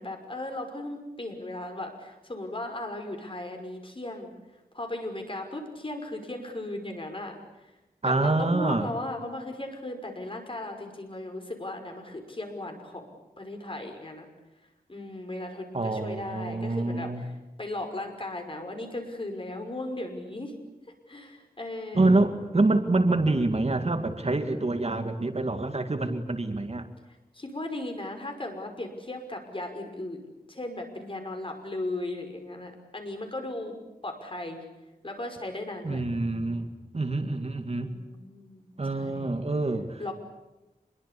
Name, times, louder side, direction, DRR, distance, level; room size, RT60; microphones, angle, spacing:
voice 1, 0.0-4.3 4.7-7.4 8.0-13.1 13.4-14.3 14.9-17.3 17.6-20.5 21.1-22.1 27.3-30.2 30.5-33.7 34.0-34.6 35.0-36.0 37.8-39.5 40.0-40.1, left 1 dB, 35° left, 4 dB, 5.9 m, -36 dB
voice 2, 8.0-8.9 15.7-17.2 21.9-26.9 35.8-37.9 38.8-40.1, right 2 dB, 45° right, 7 dB, 2.2 m, -26 dB
26.5 x 22.5 x 8.6 m, 1.0 s
wide cardioid pair, 100°, 15 cm